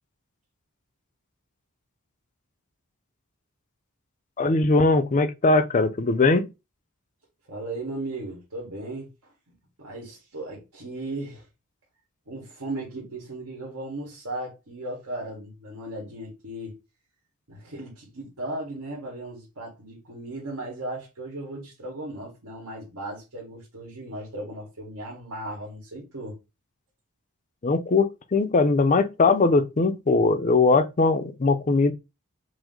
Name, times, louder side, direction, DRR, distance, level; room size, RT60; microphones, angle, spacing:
voice 1, 4.4-6.5 27.6-31.9, left 3 dB, 35° left, 0.5 m, -20 dB
voice 2, 7.5-9.3 9.8-11.4 12.3-16.8 17.5-26.4, right 1 dB, 85° right, 1.6 m, -36 dB
4.9 x 2.1 x 3.7 m
head